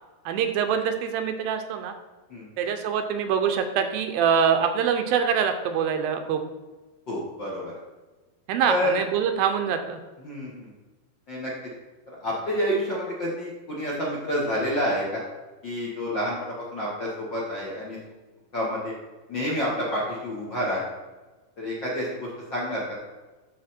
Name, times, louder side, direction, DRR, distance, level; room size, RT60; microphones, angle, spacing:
voice 1, 0.3-1.9 2.6-6.4 8.5-10.0, right 7 dB, 80° right, 7 dB, 2.4 m, -24 dB
voice 2, 7.1-7.7 8.6-8.9 10.2-10.7 11.3-11.5 12.2-15.2 15.6-18.0 18.5-18.9 19.3-20.8 21.6-22.9, equal, 50° left, -5 dB, 1.4 m, -29 dB
13.0 x 4.5 x 4.3 m, 1.2 s
omnidirectional pair, 4.3 m